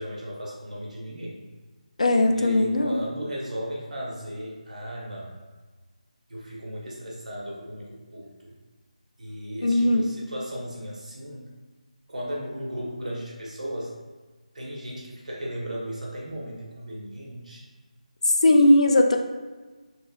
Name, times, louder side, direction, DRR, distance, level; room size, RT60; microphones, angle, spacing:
voice 1, 0.0-1.4 2.3-5.3 6.3-8.5 9.2-11.5 12.1-13.9 14.5-17.6, equal, 70° right, -3 dB, 1.0 m, -36 dB
voice 2, 2.0-3.0 9.6-10.1 18.3-19.2, left 1 dB, 55° left, 4 dB, 0.3 m, -19 dB
3.0 x 2.9 x 2.3 m, 1.3 s
figure-of-eight pair, 175°, 4 cm